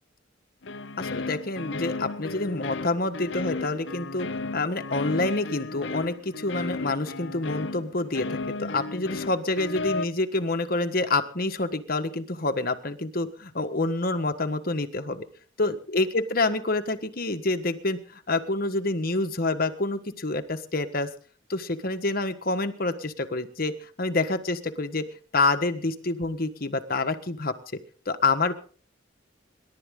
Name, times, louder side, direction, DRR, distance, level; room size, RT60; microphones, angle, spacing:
sound 1, 0.6-10.1, left 3 dB, 65° left, 0.7 m, -34 dB
voice 1, 1.0-4.3 4.5-15.3 15.6-21.1 21.5-25.1 25.3-27.5 28.0-28.5, left 2 dB, 50° left, 8 dB, 1.5 m, -27 dB
26.5 x 12.0 x 3.8 m, 0.43 s
head